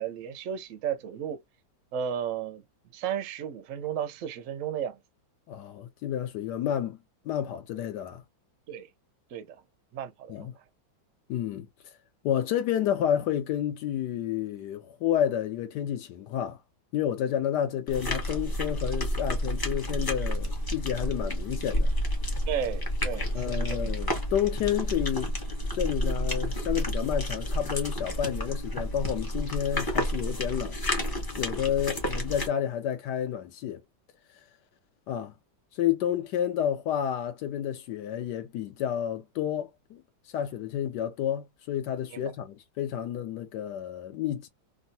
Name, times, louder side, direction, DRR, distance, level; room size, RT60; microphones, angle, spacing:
voice 1, 0.0-1.4 1.9-2.6 2.9-5.0 8.7-8.9 9.3-9.6 9.9-10.6 22.5-24.0 42.1-42.3, right 8 dB, 70° right, 0.7 m, -34 dB
voice 2, 5.5-7.0 7.2-8.2 10.3-10.5 11.3-11.9 12.2-16.6 16.9-21.9 23.3-25.3 25.7-30.8 31.4-33.8 35.1-35.3 35.7-40.0 40.3-44.5, left 10 dB, 75° left, 1.1 m, -30 dB
sound 1, 17.9-32.5, equal, 25° left, 0.4 m, -30 dB
3.5 x 2.0 x 2.7 m
omnidirectional pair, 2.1 m